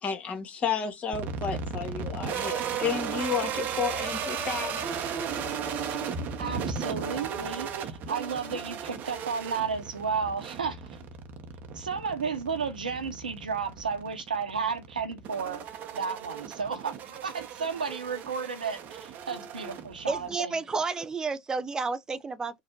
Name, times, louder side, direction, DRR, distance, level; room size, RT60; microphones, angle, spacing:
voice 1, 0.0-4.9, left 6 dB, 30° left, 1.9 m, -32 dB
sound 1, 1.1-20.3, right 6 dB, 40° right, 1.0 m, -36 dB
voice 2, 6.4-10.8 11.7-15.6 15.9-20.5, right 5 dB, 80° right, 1.2 m, -33 dB
voice 3, 20.1-22.6, right 4 dB, 15° right, 0.7 m, -31 dB
4.2 x 2.6 x 3.8 m
figure-of-eight pair, 85°, 4 cm